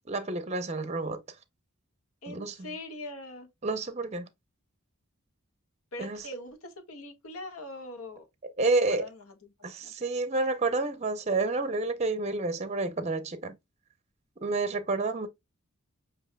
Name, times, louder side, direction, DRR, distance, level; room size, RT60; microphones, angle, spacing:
voice 1, 0.1-1.2 2.3-2.5 3.6-4.3 6.0-6.2 8.6-9.0 9.6-13.6 14.4-15.3, right 3 dB, 30° right, 0.6 m, -29 dB
voice 2, 2.2-3.5 5.9-8.3 8.6-9.9, left 1 dB, 70° left, 1.5 m, -42 dB
7.1 x 2.9 x 2.2 m
head